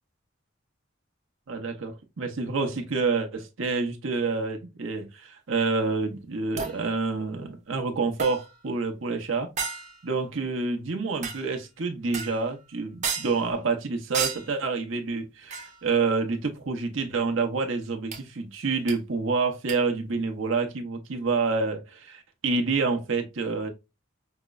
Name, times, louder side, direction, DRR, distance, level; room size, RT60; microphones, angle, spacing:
voice 1, 1.5-9.5 10.0-23.7, right 4 dB, 80° right, 0.8 m, -28 dB
sound 1, 6.6-6.9 8.2-8.6 9.6-10.1 11.2-11.6 12.1-12.5 13.0-13.5 14.1-14.6 15.5-15.9 18.1-18.2 18.9-19.0 19.7-19.8, right 6 dB, 35° right, 0.6 m, -33 dB
5.6 x 2.0 x 2.3 m
head